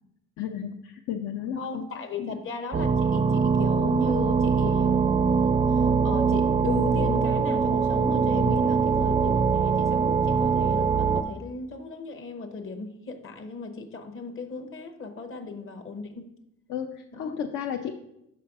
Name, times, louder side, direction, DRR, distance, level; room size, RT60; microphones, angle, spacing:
voice 1, 0.4-1.8 2.2-2.4 8.7-8.9 16.7-17.9, left 8 dB, 70° left, 3 dB, 0.6 m, -33 dB
voice 2, 1.5-16.3 17.1-17.4, left 3 dB, 45° left, 5 dB, 0.9 m, -36 dB
sound 1, 2.7-11.2, right 5 dB, 20° right, 0.4 m, -23 dB
5.0 x 4.7 x 5.9 m, 0.83 s
cardioid pair, 90°, 30 cm